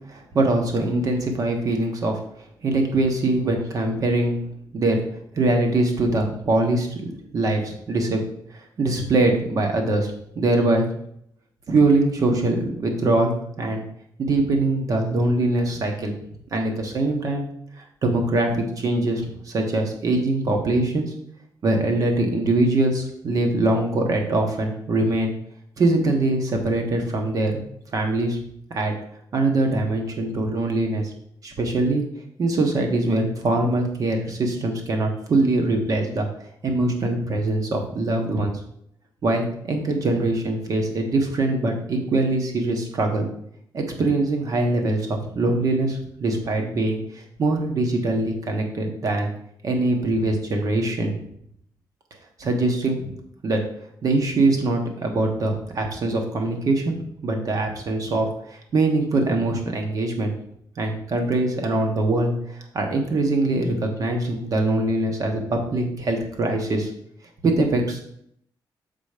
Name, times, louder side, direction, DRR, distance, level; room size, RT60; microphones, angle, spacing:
voice 1, 0.1-2.2 2.6-4.4 4.7-5.0 5.3-8.2 8.5-10.9 11.7-13.8 14.2-16.1 16.5-17.5 17.8-21.1 21.6-25.3 25.8-27.6 27.9-28.4 28.7-28.9 29.3-31.1 31.4-32.0 32.4-36.3 36.6-38.5 39.2-43.3 43.7-49.3 49.6-51.2 52.4-53.1 53.4-53.6 54.0-60.3 60.8-66.9 67.4-68.0, right 2 dB, 50° right, 3 dB, 1.3 m, -23 dB
7.0 x 4.0 x 5.1 m, 0.70 s
wide cardioid pair, 140°, 8 cm